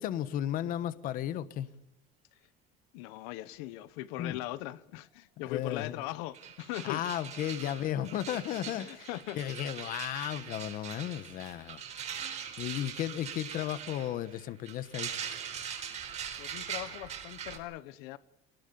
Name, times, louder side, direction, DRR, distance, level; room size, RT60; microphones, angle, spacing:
voice 1, 0.0-1.7 4.2-4.4 5.5-6.0 6.8-9.1 9.3-11.8 12.6-15.1, left 11 dB, 50° left, 1.3 m, -34 dB
voice 2, 2.9-7.0 8.8-9.4 16.4-18.2, left 15 dB, 90° left, 1.2 m, -40 dB
sound 1, 6.0-6.1 6.3-17.6, right 8 dB, 35° right, 4.3 m, -42 dB
24.0 x 20.0 x 7.0 m
cardioid pair, 155°, 19 cm